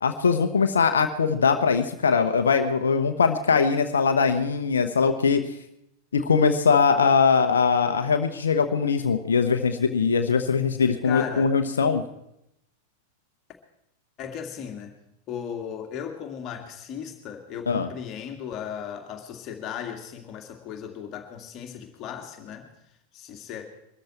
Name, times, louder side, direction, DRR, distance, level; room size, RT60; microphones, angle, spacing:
voice 1, 0.0-5.4 6.1-12.0 17.7-17.9, left 5 dB, 70° left, 7 dB, 1.0 m, -21 dB
voice 2, 11.0-11.5 14.2-14.9 15.3-22.7 23.1-23.7, left 8 dB, 35° left, 4 dB, 2.4 m, -36 dB
23.0 x 13.5 x 4.4 m, 0.81 s
figure-of-eight pair, 90°, 0 cm